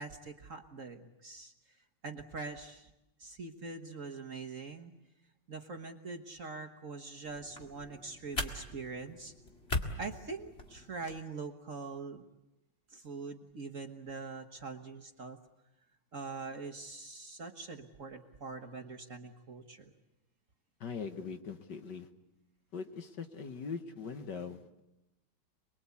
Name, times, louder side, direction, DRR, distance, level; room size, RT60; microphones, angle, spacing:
voice 1, 0.0-1.5 2.0-2.9 3.2-4.9 5.5-9.3 10.0-12.3 12.9-15.4 16.1-19.9, right 4 dB, 40° right, 6 dB, 1.4 m, -43 dB
sound 1, 7.2-11.2, left 2 dB, 30° left, 2.2 m, -40 dB
voice 2, 20.8-22.1 22.7-24.8, left 5 dB, 55° left, 8 dB, 1.8 m, -41 dB
28.0 x 21.5 x 8.4 m, 0.92 s
omnidirectional pair, 2.4 m